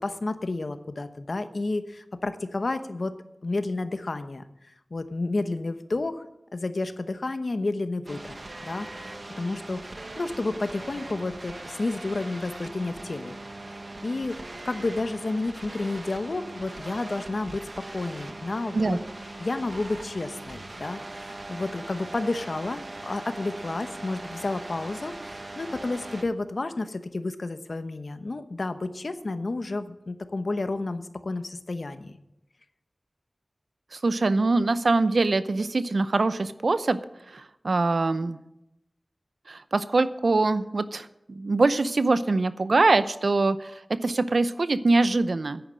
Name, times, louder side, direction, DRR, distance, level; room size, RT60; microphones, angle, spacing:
voice 1, 0.0-3.1 3.4-4.4 4.9-6.2 6.5-8.4 8.6-9.8 10.2-13.3 14.0-14.4 14.6-17.7 17.9-19.0 19.4-32.2, left 2 dB, 70° left, 9 dB, 1.0 m, -31 dB
sound 1, 8.1-26.2, right 2 dB, 55° right, 1.3 m, -40 dB
voice 2, 33.9-37.0 37.3-38.4 39.5-45.6, right 3 dB, 80° right, 13 dB, 0.6 m, -23 dB
10.0 x 9.1 x 7.6 m, 0.87 s
wide cardioid pair, 50°, 0 cm